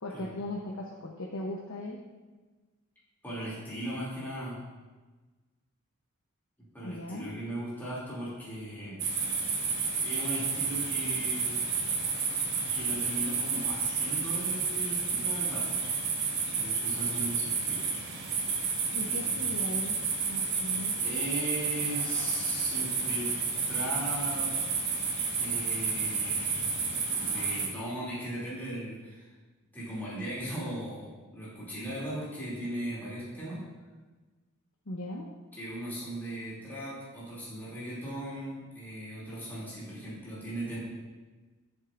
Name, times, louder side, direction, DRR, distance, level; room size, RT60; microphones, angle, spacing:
voice 1, 0.0-2.0 6.8-7.3 18.9-20.0 20.3-20.9 34.9-35.3, left 1 dB, 75° left, -1 dB, 0.9 m, -38 dB
voice 2, 3.2-4.6 6.7-9.0 10.0-11.6 12.7-15.8 16.5-17.9 19.1-19.4 20.9-23.3 23.7-24.5 25.4-26.7 27.1-29.3 29.7-31.1 31.3-33.6 35.5-40.8, right 1 dB, 10° left, -9 dB, 2.7 m, -38 dB
sound 1, 9.0-27.7, right 5 dB, 55° right, 1.6 m, -31 dB
13.0 x 7.4 x 2.6 m, 1.3 s
head